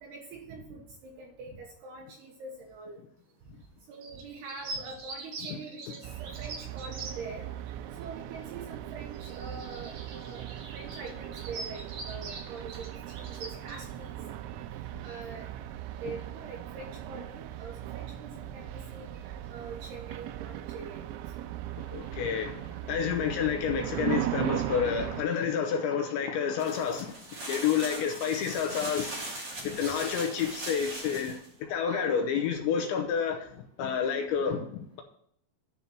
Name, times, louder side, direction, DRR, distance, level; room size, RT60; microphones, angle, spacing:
voice 1, 0.0-3.0 3.9-7.5 8.0-10.5 10.7-14.2 14.5-15.5 16.0-19.2 19.5-21.0 27.8-28.6 31.9-32.2, right 4 dB, 75° right, 1 dB, 2.6 m, -44 dB
sound 1, 3.9-7.1 7.7-7.8 9.1-13.8, right 3 dB, 55° right, 2.7 m, -43 dB
sound 2, 6.0-25.2, right 13 dB, 90° right, 2.6 m, -38 dB
voice 2, 21.9-22.6 22.9-27.2 27.5-29.2 29.6-31.4 31.7-35.0, left 7 dB, 80° left, 4 dB, 2.9 m, -29 dB
sound 3, 26.6-31.5, right 2 dB, 40° right, 1.6 m, -40 dB
10.5 x 4.3 x 7.3 m, 0.67 s
omnidirectional pair, 5.8 m